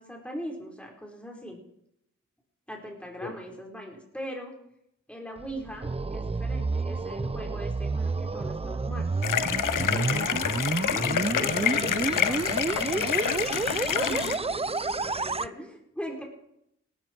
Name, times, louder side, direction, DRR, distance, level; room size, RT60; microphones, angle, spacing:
voice 1, 0.0-1.6 2.7-4.5 5.1-9.1 11.2-12.4 13.2-16.2, equal, 5° left, 0 dB, 4.8 m, -40 dB
sound 1, 5.4-15.5, right 3 dB, 20° right, 0.5 m, -30 dB
sound 2, 9.2-14.4, left 9 dB, 80° left, 0.8 m, -27 dB
voice 2, 9.7-10.6 11.0-13.2, left 1 dB, 30° left, 1 dB, 4.4 m, -38 dB
17.5 x 14.5 x 4.7 m, 0.79 s
cardioid pair, 55°, 31 cm